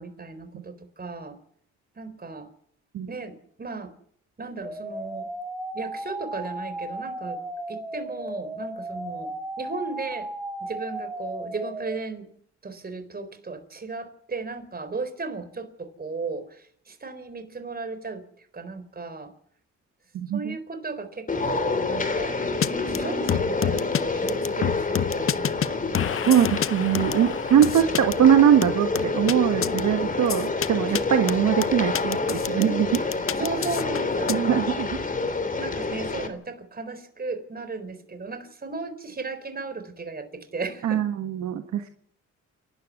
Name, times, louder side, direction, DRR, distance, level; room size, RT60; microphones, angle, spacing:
voice 1, 0.0-1.4 2.0-2.5 3.1-3.9 4.4-5.3 5.7-7.4 7.7-9.3 9.6-10.3 10.6-12.3 12.6-18.2 18.5-19.3 20.3-22.4 22.9-25.8 30.9-31.1 33.4-34.6 35.6-41.0, right 4 dB, 30° right, 10 dB, 4.1 m, -35 dB
sound 1, 4.6-12.0, right 1 dB, 5° right, 4.4 m, -35 dB
voice 2, 20.1-20.6 26.3-33.0 34.3-34.9 40.8-41.9, right 9 dB, 65° right, 7 dB, 1.5 m, -21 dB
sound 2, 21.3-36.3, left 3 dB, 25° left, 3.0 m, -28 dB
sound 3, 22.6-22.7 22.9-23.0 23.3-24.0 24.3-25.7 25.9-28.1 28.6-29.3 29.6-29.8 30.3-30.7 30.9-31.0 31.3-32.6 32.9-34.3, left 9 dB, 45° left, 0.8 m, -28 dB
28.0 x 12.0 x 8.2 m, 0.63 s
cardioid pair, 90°, 30 cm